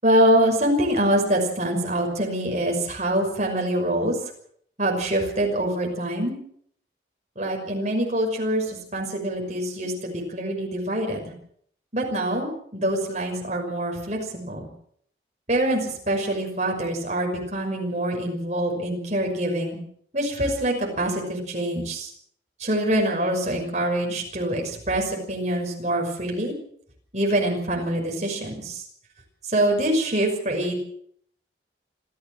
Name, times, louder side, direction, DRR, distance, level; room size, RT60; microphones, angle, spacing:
voice 1, 0.0-4.2 4.8-6.4 7.4-11.3 11.9-14.7 15.5-19.8 20.1-22.1 22.6-26.5 27.1-28.8 29.4-30.7, right 1 dB, 40° right, 1 dB, 5.9 m, -25 dB
27.0 x 15.0 x 6.5 m, 0.65 s
head